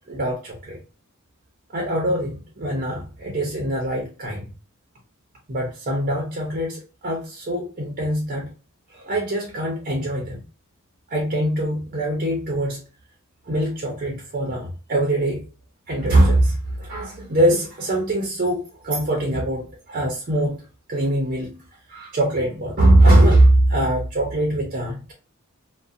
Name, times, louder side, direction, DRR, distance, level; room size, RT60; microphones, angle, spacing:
voice 1, 0.1-0.8 1.7-4.5 5.5-8.5 8.9-10.4 11.1-12.8 13.5-15.4 15.9-20.6 20.9-21.5 21.9-25.1, right 1 dB, 40° right, 0.5 m, -22 dB
2.4 x 2.1 x 2.5 m
head